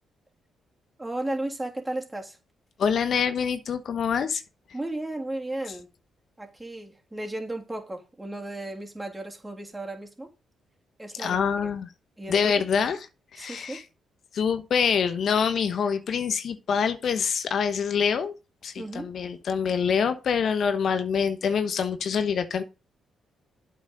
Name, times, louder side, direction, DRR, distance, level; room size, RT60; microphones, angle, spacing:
voice 1, 1.0-2.4 4.7-5.9 6.4-10.3 11.0-11.7 12.2-12.5 13.4-13.8 18.8-19.1, right 1 dB, 15° right, 3.1 m, -34 dB
voice 2, 2.8-4.4 11.2-11.9 12.3-13.0 13.3-13.8 14.3-18.3 18.6-22.6, left 6 dB, 65° left, 1.1 m, -25 dB
8.3 x 6.2 x 3.9 m
supercardioid pair, 55°, 0 cm